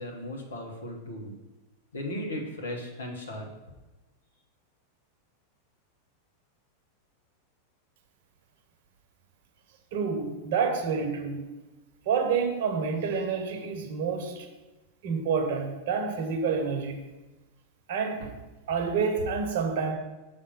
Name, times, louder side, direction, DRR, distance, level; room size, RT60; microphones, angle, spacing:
voice 1, 0.0-1.4 1.9-3.5, left 1 dB, 70° left, 0 dB, 1.3 m, -36 dB
voice 2, 9.9-11.5 12.1-14.5 15.0-17.0 17.9-18.3 18.7-19.9, right 5 dB, 50° right, 4 dB, 1.0 m, -28 dB
6.5 x 3.6 x 5.7 m, 1.1 s
figure-of-eight pair, 90°, 0 cm